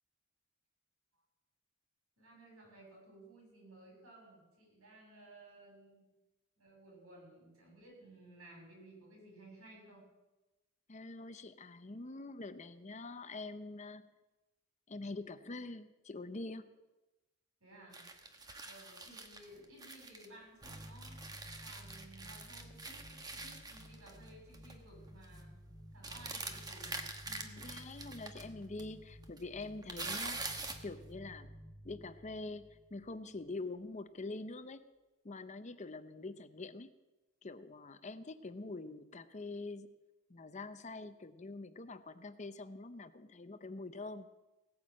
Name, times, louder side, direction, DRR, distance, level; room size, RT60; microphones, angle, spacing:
voice 1, 2.2-6.1 6.6-10.1 17.6-18.1 18.6-21.2 21.6-25.5 25.9-26.9 27.3-27.7, right 1 dB, 80° right, -1 dB, 7.2 m, -57 dB
voice 2, 10.9-14.1 14.9-16.6 27.6-30.4 30.8-31.5 31.8-34.8 35.2-36.9 37.4-39.9 40.3-44.3, left 3 dB, 35° left, 11 dB, 0.7 m, -45 dB
sound 1, 17.9-20.3 20.6-24.3 24.5-24.8 25.1-25.4 26.0-28.4 28.8-28.9 29.2-30.9, right 3 dB, 20° right, 1.2 m, -45 dB
sound 2, 20.6-33.8, equal, ahead, 5.4 m, -54 dB
17.5 x 9.6 x 7.4 m, 1.1 s
head